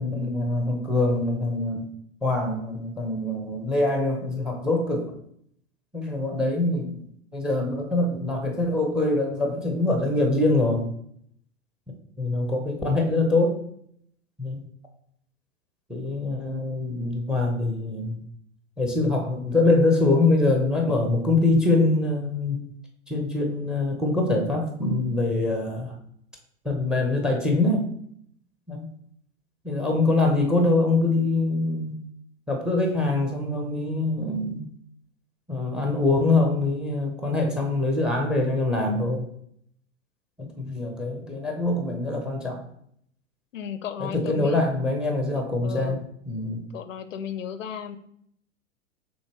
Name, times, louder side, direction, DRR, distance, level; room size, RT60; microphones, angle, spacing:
voice 1, 0.0-1.8 2.2-5.1 5.9-7.1 7.3-10.9 12.2-13.6 14.4-14.6 15.9-18.2 18.8-22.6 23.1-25.9 26.6-27.9 28.7-28.9 29.6-32.0 32.5-34.7 35.5-39.3 40.4-42.6 44.0-46.0 46.3-46.6, left 2 dB, ahead, 3 dB, 0.6 m, -24 dB
voice 2, 43.5-44.6 45.3-46.0 46.7-48.0, left 8 dB, 80° left, 11 dB, 0.5 m, -35 dB
6.4 x 2.7 x 2.9 m, 0.68 s
figure-of-eight pair, 95°, 38 cm